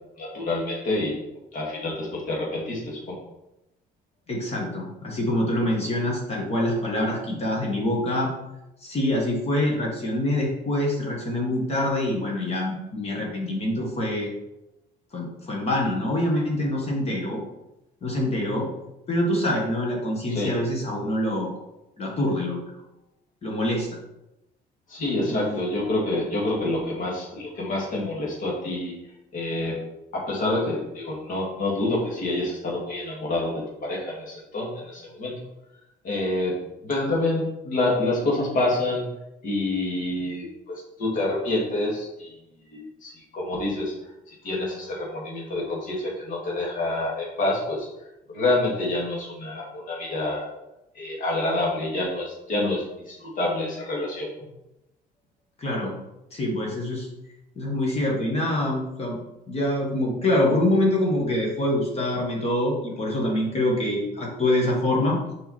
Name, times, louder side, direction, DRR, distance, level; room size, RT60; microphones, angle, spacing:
voice 1, 0.2-1.2 1.5-3.2 20.3-20.6 24.9-29.0 29.3-29.8 30.1-35.3 36.0-39.1 39.4-42.3 42.7-43.9 44.3-47.9 48.3-50.5 50.9-54.3, left 2 dB, 55° left, -4 dB, 2.4 m, -27 dB
voice 2, 4.3-8.3 8.8-14.3 15.1-17.4 18.0-18.7 19.1-21.6 22.0-22.6 23.4-23.9 25.3-25.6 55.6-55.9 56.3-57.1 57.6-59.2 59.5-65.2, left 1 dB, 40° left, -1 dB, 1.7 m, -25 dB
5.6 x 5.1 x 4.3 m, 0.91 s
cardioid pair, 110°, 17 cm